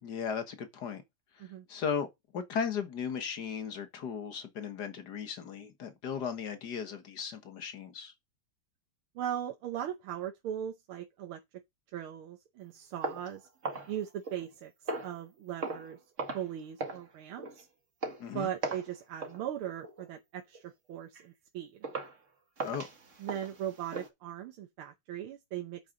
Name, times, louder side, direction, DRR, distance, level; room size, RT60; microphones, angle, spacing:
voice 1, 0.0-1.0 1.4-2.1 2.3-8.1 18.2-18.5 22.6-22.9, left 7 dB, 50° left, 1.9 m, -36 dB
voice 2, 9.2-11.4 11.9-13.5 13.9-16.0 16.3-17.7 18.3-21.8 23.2-25.8, right 10 dB, 75° right, 1.8 m, -39 dB
sound 1, 13.0-14.5 14.9-15.2 15.6-15.9 16.2-16.5 16.8-17.1 17.4-17.6 18.0-18.2 18.6-18.9 19.2-19.4 19.8-20.1 20.5-20.7 21.2-21.3 21.8-22.2 22.6-24.1, right 3 dB, 35° right, 2.1 m, -38 dB
8.3 x 7.4 x 3.9 m
omnidirectional pair, 2.4 m